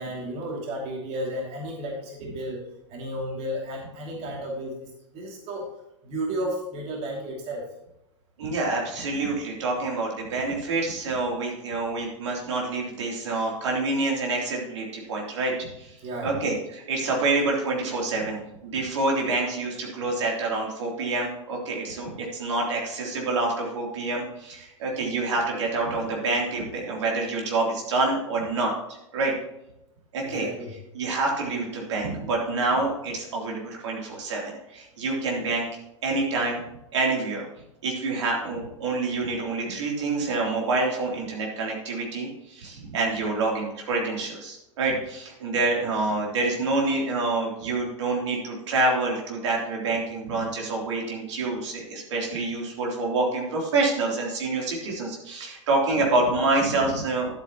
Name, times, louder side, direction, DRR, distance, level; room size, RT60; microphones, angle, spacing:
voice 1, 0.0-2.6 2.9-5.6 6.0-7.7 16.0-16.4 30.2-30.8 39.6-39.8 40.1-40.2, right 1 dB, 40° right, -1 dB, 2.7 m, -33 dB
voice 2, 8.4-15.9 16.2-28.7 29.1-29.3 30.1-30.5 30.9-35.6 36.0-36.6 36.9-37.4 37.8-57.3, right 3 dB, 65° right, -1 dB, 3.3 m, -27 dB
12.0 x 8.4 x 3.0 m, 0.85 s
figure-of-eight pair, 95°, 16 cm